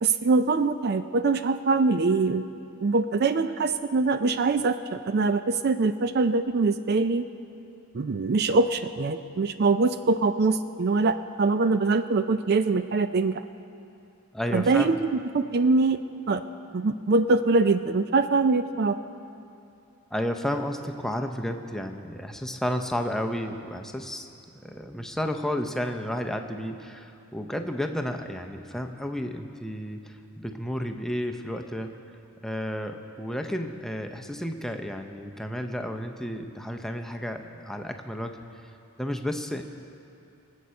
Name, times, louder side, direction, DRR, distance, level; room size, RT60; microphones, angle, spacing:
voice 1, 0.0-2.5 2.8-7.2 7.9-13.4 14.5-15.0 15.3-16.0 16.3-16.4 16.7-19.0, right 3 dB, 45° right, 11 dB, 0.4 m, -23 dB
voice 2, 14.3-14.9 20.1-24.3 24.6-32.0 32.4-38.4 39.0-39.6, equal, ahead, 4 dB, 0.6 m, -32 dB
23.5 x 8.2 x 6.4 m, 2.6 s
head